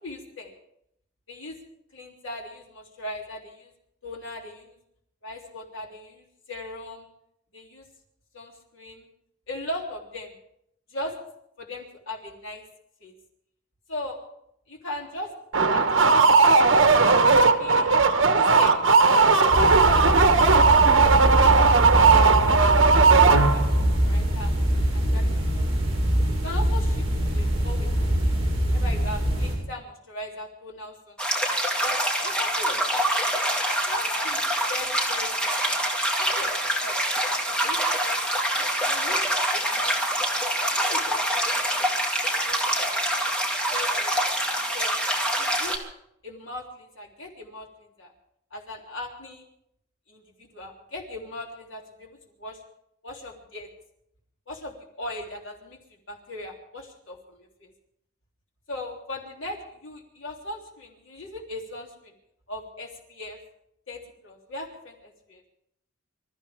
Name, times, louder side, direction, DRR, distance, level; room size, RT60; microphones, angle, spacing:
voice 1, 0.0-0.5 1.3-1.6 1.9-3.7 4.0-4.7 5.2-7.1 7.5-7.8 8.3-9.1 9.5-10.3 10.9-11.2 11.6-12.6 13.0-13.1 13.9-14.2 14.7-15.3 15.7-16.3 16.7-17.2 17.5-17.9 18.3-20.1 21.9-24.5 24.9-26.0 26.4-27.0 27.3-27.9 28.2-28.3 28.7-31.2 31.8-33.3 33.8-35.8 36.2-38.3 38.6-39.2 39.5-40.4 40.7-41.9 42.4-43.0 43.7-44.3 44.7-44.9 45.2-45.8 46.2-47.7 48.0-48.1 48.5-49.4 50.1-52.1 52.4-52.6 53.0-53.7 54.5-55.8 56.1-57.7 58.7-62.1 62.5-63.4 63.9-65.4, left 1 dB, 70° left, 0 dB, 3.3 m, -39 dB
sound 1, 15.5-23.8, right 4 dB, 70° right, 1.2 m, -17 dB
sound 2, 19.5-29.6, equal, 30° right, 6.9 m, -24 dB
sound 3, 31.2-45.8, right 1 dB, 5° left, 2.1 m, -25 dB
26.0 x 14.0 x 3.6 m, 0.76 s
head